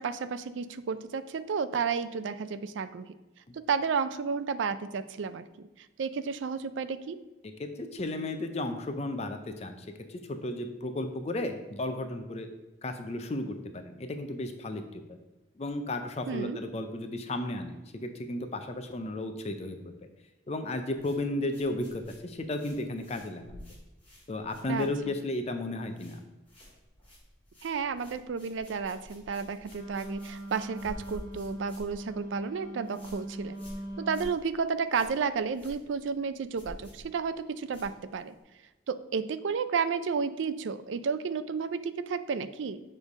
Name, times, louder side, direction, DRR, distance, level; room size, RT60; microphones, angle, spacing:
voice 1, 0.0-3.1 3.5-7.2 16.3-16.6 24.7-25.1 27.6-33.6 34.0-38.3 38.9-42.8, right 5 dB, 75° right, 13 dB, 0.4 m, -32 dB
voice 2, 7.6-12.5 12.8-15.0 15.6-19.9 20.5-23.6 24.3-26.2, left 1 dB, 35° left, 7 dB, 0.4 m, -34 dB
sound 1, 21.0-25.3 25.6-26.2 26.4-38.4, equal, 10° left, 2.3 m, -50 dB
Wind instrument woodwind instrument, 29.6-34.3, right 1 dB, 40° right, 1.6 m, -41 dB
7.2 x 3.3 x 5.2 m, 1.1 s
head